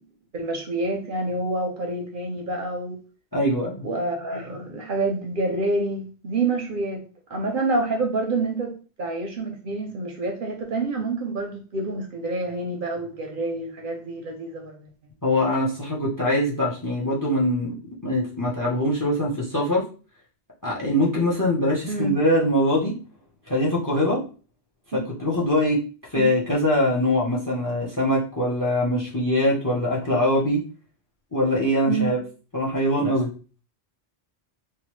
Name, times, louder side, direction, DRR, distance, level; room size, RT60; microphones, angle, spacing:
voice 1, 0.3-3.0 3.8-7.0 7.3-8.7 9.0-14.9 21.9-22.2 24.9-25.0 26.2-26.3 31.9-32.2, right 2 dB, 60° right, 1 dB, 0.7 m, -27 dB
voice 2, 3.3-3.8 15.2-17.8 18.0-19.8 20.6-22.9 23.5-24.2 24.9-25.8 26.1-30.6 31.3-32.2 32.5-33.3, left 1 dB, 20° left, -2 dB, 0.6 m, -23 dB
3.0 x 2.2 x 3.0 m, 0.37 s
omnidirectional pair, 1.1 m